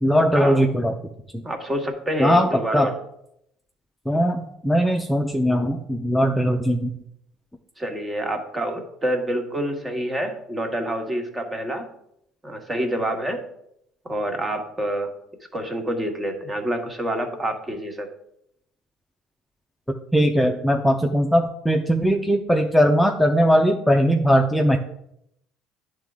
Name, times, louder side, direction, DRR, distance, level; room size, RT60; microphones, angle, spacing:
voice 1, 0.0-0.9 2.2-2.9 4.1-6.9 20.1-24.8, equal, ahead, 2 dB, 0.7 m, -19 dB
voice 2, 1.4-2.9 7.8-11.8 12.4-13.4 14.0-15.1 15.5-18.1, right 1 dB, 20° right, 4 dB, 1.7 m, -27 dB
10.5 x 3.8 x 3.7 m, 0.77 s
hypercardioid pair, 70°, 0 cm